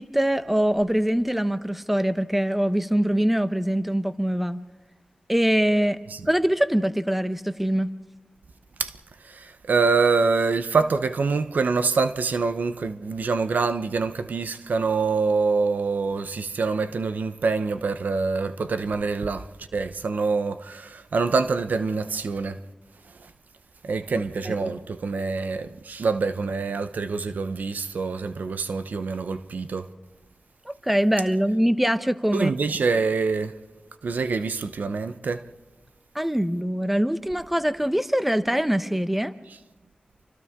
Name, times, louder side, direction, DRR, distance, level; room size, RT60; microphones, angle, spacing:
voice 1, 0.0-4.6 5.3-6.0 6.3-7.9 24.5-24.7 30.8-32.5 36.1-39.3, equal, 5° right, 0.9 m, -23 dB
voice 2, 9.2-22.6 23.2-23.3 23.8-29.9 32.3-33.6 34.0-35.4, right 4 dB, 85° right, 0.9 m, -25 dB
28.5 x 25.0 x 3.7 m
wide cardioid pair, 80°, 3 cm